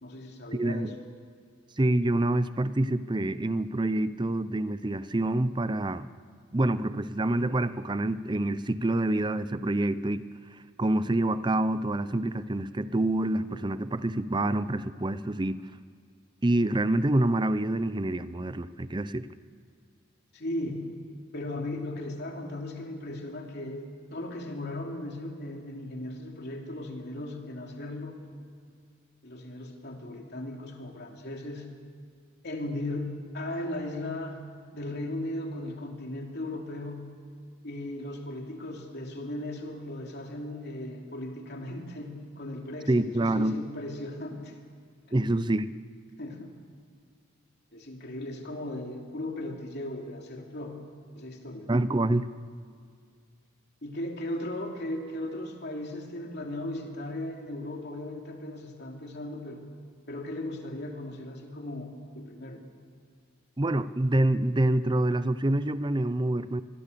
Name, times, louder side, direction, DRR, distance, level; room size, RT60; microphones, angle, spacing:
voice 1, 0.0-0.9 20.3-20.9 21.3-28.2 29.2-31.7 32.4-34.5 34.7-37.1 37.6-44.5 46.2-46.5 47.7-50.8 51.1-51.7 53.8-59.6 60.1-62.6, left 1 dB, 55° left, 1 dB, 3.0 m, -37 dB
voice 2, 0.5-0.9 1.8-6.1 6.5-10.3 10.8-15.6 16.4-19.3 42.9-43.6 45.1-45.7 51.7-52.3 63.6-66.6, right 1 dB, 20° right, 14 dB, 0.6 m, -27 dB
25.5 x 22.0 x 6.9 m, 2.2 s
head